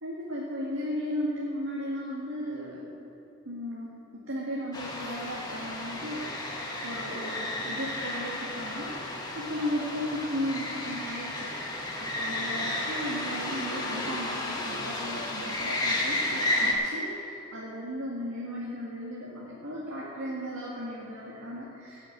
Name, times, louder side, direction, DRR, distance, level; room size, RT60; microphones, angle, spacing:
voice 1, 0.0-2.9 3.4-9.0 9.3-22.1, equal, 75° right, -6 dB, 1.9 m, -36 dB
sound 1, 4.7-16.7, left 1 dB, 20° left, 1.4 m, -32 dB
17.5 x 6.5 x 6.5 m, 2.7 s
head